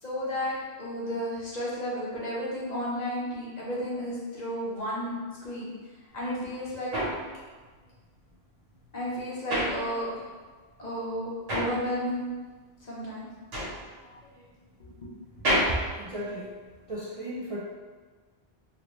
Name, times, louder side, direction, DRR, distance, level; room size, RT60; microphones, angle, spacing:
voice 1, 0.0-5.7 6.1-7.0 8.9-10.3 10.8-12.3 12.8-13.3 14.0-14.5 14.8-15.1, equal, 45° left, -7 dB, 0.9 m, -33 dB
sound 1, 6.2-10.5 10.7-17.0, equal, 70° right, 1.3 m, -32 dB
voice 2, 15.7-16.5 16.9-17.6, right 1 dB, 45° right, -8 dB, 0.5 m, -35 dB
2.9 x 2.8 x 3.1 m, 1.4 s
omnidirectional pair, 1.1 m